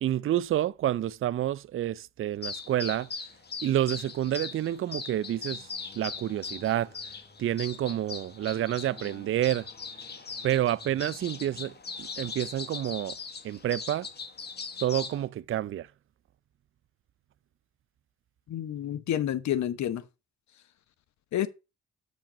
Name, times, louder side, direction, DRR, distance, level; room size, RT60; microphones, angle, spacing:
voice 1, 0.0-3.1 3.6-5.7 6.0-6.9 7.4-9.7 10.4-11.7 12.0-13.2 13.4-14.1 14.8-15.9, right 12 dB, 45° right, 0.5 m, -29 dB
sound 1, 2.4-15.2, left 5 dB, 35° left, 1.4 m, -40 dB
voice 2, 18.5-20.0 21.3-21.5, left 11 dB, 65° left, 1.0 m, -29 dB
7.1 x 5.1 x 5.1 m
cardioid pair, 90°, 30 cm